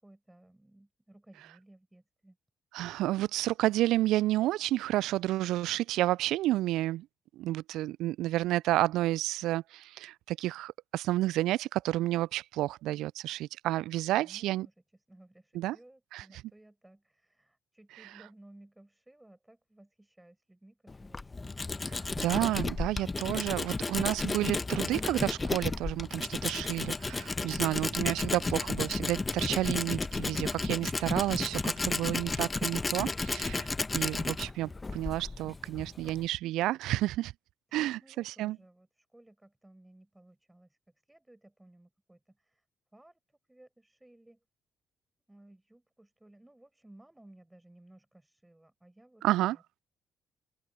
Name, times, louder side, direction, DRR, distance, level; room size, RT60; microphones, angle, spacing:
voice 1, 0.0-2.4 14.1-14.7 15.1-21.5 38.0-40.7 41.1-42.6 42.9-43.2 43.5-44.4 45.3-49.6, right 1 dB, 10° right, 7.6 m, -58 dB
voice 2, 2.7-7.1 7.4-14.7 15.5-15.8 16.1-16.2 18.0-18.1 21.9-37.3 37.7-38.6 49.2-49.6, right 16 dB, 70° right, 0.4 m, -30 dB
Tools, 20.9-36.3, left 3 dB, 25° left, 1.1 m, -33 dB
open air
hypercardioid pair, 45°, 0 cm